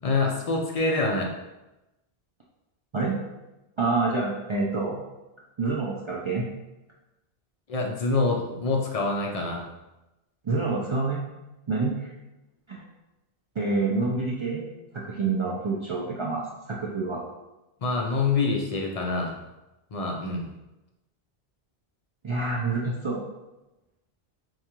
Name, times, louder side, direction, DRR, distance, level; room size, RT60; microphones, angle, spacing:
voice 1, 0.0-1.3 7.7-9.6 17.8-19.4 19.9-20.5, left 3 dB, 50° left, 0 dB, 0.4 m, -26 dB
voice 2, 3.8-5.0 5.6-6.5 10.4-11.2 11.7-12.1 12.7-12.8 13.6-14.6 14.9-17.2 22.2-23.2, right 3 dB, 55° right, -4 dB, 0.3 m, -27 dB
4.6 x 2.3 x 2.8 m, 1.0 s
omnidirectional pair, 1.0 m